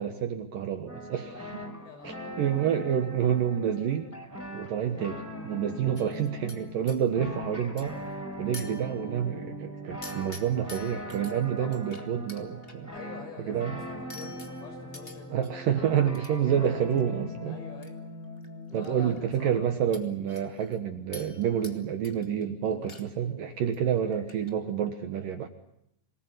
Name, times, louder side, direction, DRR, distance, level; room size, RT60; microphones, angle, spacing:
voice 1, 0.0-1.6 2.0-4.1 4.5-8.0 8.4-12.9 13.5-13.8 15.3-17.6 18.7-25.5, right 9 dB, 65° right, 7 dB, 2.4 m, -28 dB
sound 1, 0.9-20.2, equal, 5° left, 4.0 m, -41 dB
voice 2, 1.8-2.5 11.6-11.8 12.9-15.3 16.3-16.7 17.5-18.0 18.7-19.7, left 5 dB, 70° left, 5 dB, 7.8 m, -46 dB
sound 2, 5.9-7.0 7.8-8.1 8.5-9.3 10.0-11.3 11.7-12.8 14.1-15.5 16.1-16.3 16.6-17.0 17.8-17.9 18.2-18.9 19.1-19.2 19.9-20.8 21.1-21.8 22.0-22.4 22.7-23.3 23.5-23.8 24.1-24.5, left 3 dB, 50° left, 0.6 m, -47 dB
26.5 x 19.0 x 9.8 m, 0.78 s
omnidirectional pair, 5.2 m